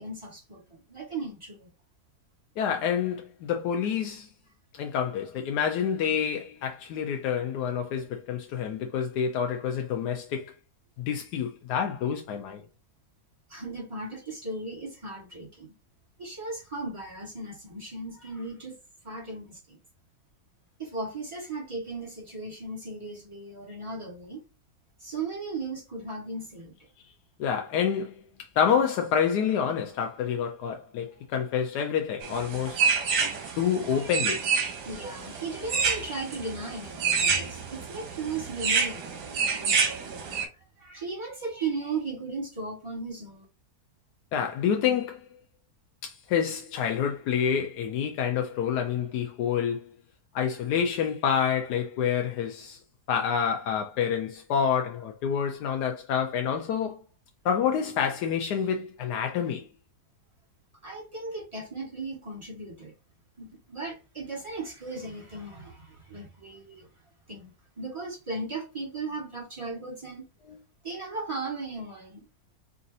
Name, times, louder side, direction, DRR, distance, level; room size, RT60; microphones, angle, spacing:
voice 1, 0.0-1.7 8.0-8.1 13.5-15.7 16.2-18.8 19.0-19.8 20.8-24.4 25.0-26.8 33.3-33.6 34.0-34.1 34.8-40.5 40.8-43.4 60.8-62.9 63.4-66.9 67.3-70.3 70.8-72.3, right 3 dB, 20° right, 1.6 m, -37 dB
voice 2, 2.6-4.3 4.7-10.5 11.0-12.6 27.4-32.8 33.6-34.5 44.3-45.2 46.0-49.9 50.3-52.8 53.1-57.0 57.4-59.7 70.5-70.6, left 7 dB, 85° left, 1.2 m, -28 dB
sound 1, 32.2-40.5, right 5 dB, 85° right, 1.5 m, -28 dB
4.9 x 2.5 x 2.7 m
omnidirectional pair, 1.7 m